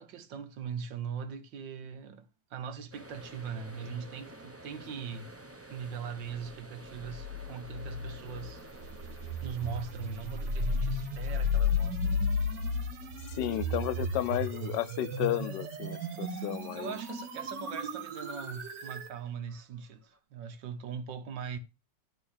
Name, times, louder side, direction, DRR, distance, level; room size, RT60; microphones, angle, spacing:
voice 1, 0.0-5.3 5.7-8.6 9.4-12.3 16.3-16.5 16.7-21.6, right 7 dB, 90° right, 1.8 m, -40 dB
sound 1, 2.9-17.7 18.0-18.5 18.8-20.2, right 2 dB, 15° right, 0.6 m, -53 dB
sound 2, 7.0-19.1, left 3 dB, 70° right, 2.2 m, -34 dB
voice 2, 13.4-17.0, left 13 dB, 80° left, 1.3 m, -33 dB
11.5 x 3.9 x 6.4 m
omnidirectional pair, 1.9 m